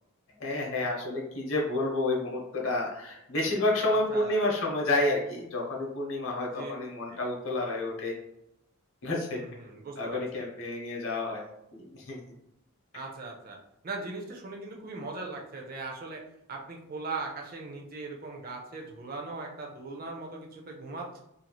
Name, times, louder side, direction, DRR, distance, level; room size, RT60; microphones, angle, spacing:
voice 1, 0.4-8.1 9.0-9.4 10.0-12.2, left 2 dB, 65° left, -1 dB, 0.8 m, -30 dB
voice 2, 3.9-4.4 6.5-6.7 7.1-7.2 9.3-10.5 12.9-13.6 13.8-16.2 16.5-21.2, right 3 dB, 45° right, 0 dB, 0.5 m, -39 dB
3.0 x 2.7 x 2.3 m, 0.84 s
head